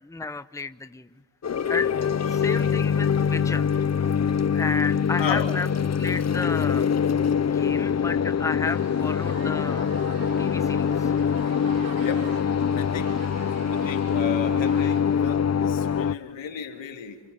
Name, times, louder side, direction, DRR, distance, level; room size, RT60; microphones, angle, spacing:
voice 1, 0.0-1.2 1.7-1.9 2.3-3.7 4.5-5.7 6.0-6.9 7.4-9.9 10.4-11.2, left 3 dB, 5° left, 12 dB, 0.9 m, -32 dB
sound 1, 1.4-16.1, left 7 dB, 35° left, 0.8 m, -24 dB
voice 2, 5.2-5.5 12.0-12.3 12.7-13.1 13.4-17.2, left 8 dB, 70° left, 4 dB, 3.2 m, -34 dB
sound 2, 8.6-15.0, right 5 dB, 80° right, 3.7 m, -44 dB
28.0 x 27.5 x 7.0 m, 1.4 s
supercardioid pair, 55°, 46 cm